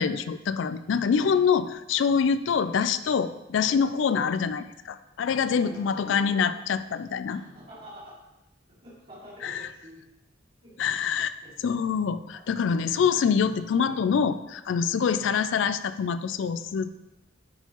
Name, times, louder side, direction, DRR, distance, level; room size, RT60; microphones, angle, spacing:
voice 1, 0.0-7.4 9.4-9.7 10.8-16.9, left 6 dB, 70° left, 13 dB, 0.3 m, -25 dB
voice 2, 5.6-6.4 7.2-8.2 8.8-10.0 10.6-10.7 11.4-11.5 12.3-12.4 12.7-13.1 13.7-13.9 15.2-15.4, equal, 45° right, -11 dB, 2.2 m, -47 dB
10.5 x 4.5 x 3.0 m, 0.93 s
head